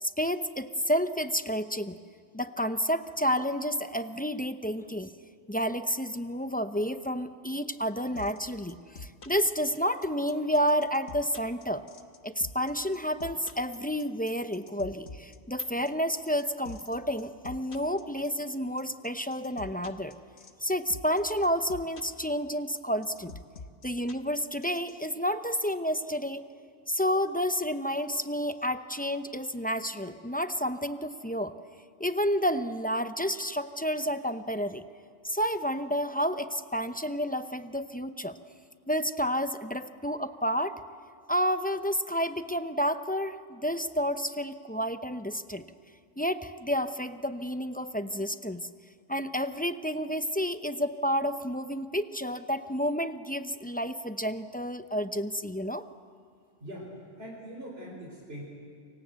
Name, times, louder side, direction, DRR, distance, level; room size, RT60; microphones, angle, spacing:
voice 1, 0.0-2.0 2.3-5.1 5.5-11.8 12.2-20.2 20.6-23.3 23.8-26.4 26.9-31.5 32.0-34.8 35.2-38.4 38.9-40.8 41.3-45.6 46.2-48.7 49.1-55.8, equal, 10° left, 10 dB, 0.5 m, -30 dB
sound 1, 8.2-24.9, left 3 dB, 60° left, 1.6 m, -45 dB
voice 2, 57.2-58.4, equal, 50° right, -4 dB, 4.8 m, -42 dB
28.5 x 25.0 x 8.1 m, 2.2 s
omnidirectional pair, 1.3 m